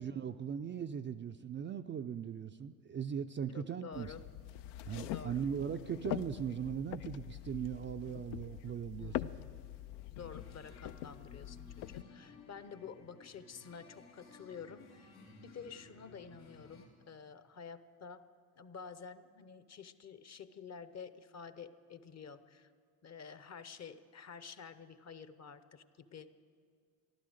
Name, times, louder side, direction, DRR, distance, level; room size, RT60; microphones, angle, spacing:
voice 1, 0.0-4.1 4.8-9.3, right 8 dB, 30° right, 7 dB, 0.4 m, -39 dB
voice 2, 3.5-4.2 5.1-5.4 9.0-9.5 10.1-15.1 15.4-18.2 18.6-22.7 23.0-26.3, left 6 dB, 40° left, 13 dB, 0.8 m, -50 dB
sound 1, 3.9-12.0, left 13 dB, 70° left, 0.5 m, -44 dB
sound 2, 10.3-16.9, left 3 dB, 90° left, 2.8 m, -57 dB
14.5 x 12.0 x 6.5 m, 2.2 s
supercardioid pair, 70°, 43 cm